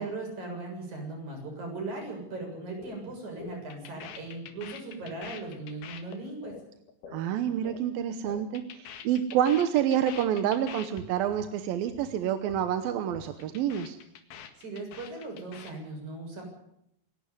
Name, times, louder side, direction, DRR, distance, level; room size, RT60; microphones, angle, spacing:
voice 1, 0.0-6.6 14.6-16.5, right 3 dB, 40° right, 1 dB, 8.6 m, -38 dB
sound 1, 2.8-3.0 3.2-7.8 8.1-11.0 11.3-11.5 11.7-12.1 12.3-12.7 13.0-15.7, left 7 dB, 65° left, 3.4 m, -45 dB
voice 2, 7.1-14.0, right 10 dB, 70° right, 9 dB, 2.4 m, -28 dB
28.0 x 11.5 x 9.7 m, 0.77 s
omnidirectional pair, 5.0 m